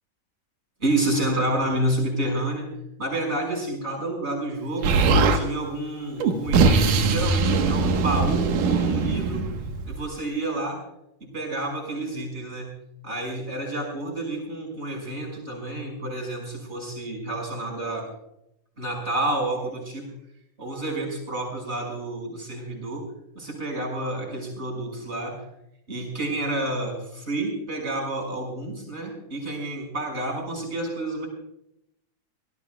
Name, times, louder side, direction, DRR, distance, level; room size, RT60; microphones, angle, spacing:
voice 1, 0.8-2.7 3.0-5.0 5.3-9.5 9.8-10.8 11.2-12.7 13.0-18.1 18.8-20.1 20.6-23.0 23.3-25.4 25.9-31.3, right 1 dB, 20° right, 0 dB, 5.9 m, -29 dB
Explosion, 4.8-5.4 6.2-10.1, right 4 dB, 90° right, 2.9 m, -21 dB
25.5 x 18.0 x 2.3 m, 0.79 s
omnidirectional pair, 3.6 m